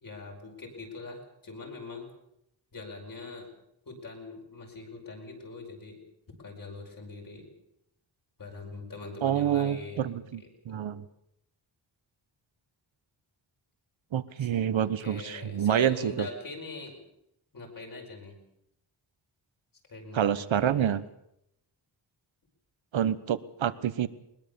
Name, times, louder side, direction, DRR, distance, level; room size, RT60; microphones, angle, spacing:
voice 1, 0.0-2.1 2.7-3.5 3.9-6.0 6.3-7.5 8.4-10.9 14.4-14.5 14.8-17.0 17.5-18.4 19.9-21.0, left 3 dB, 45° left, 2 dB, 5.2 m, -42 dB
voice 2, 9.2-11.0 14.1-16.3 20.1-21.0 22.9-24.1, right 10 dB, 85° right, 14 dB, 1.1 m, -27 dB
21.5 x 21.0 x 7.0 m, 0.80 s
wide cardioid pair, 170°, 45 cm